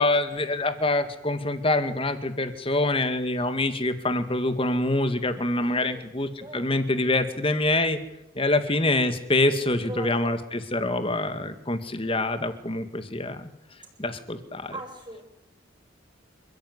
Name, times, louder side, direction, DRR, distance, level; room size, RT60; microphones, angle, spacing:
voice 1, 0.0-8.0 8.4-13.5 14.0-14.7, left 2 dB, 25° left, 9 dB, 2.1 m, -25 dB
voice 2, 5.6-6.1 6.4-6.9 9.6-10.4 14.7-15.2, equal, 20° right, 4 dB, 7.1 m, -41 dB
28.5 x 15.0 x 9.7 m, 0.87 s
head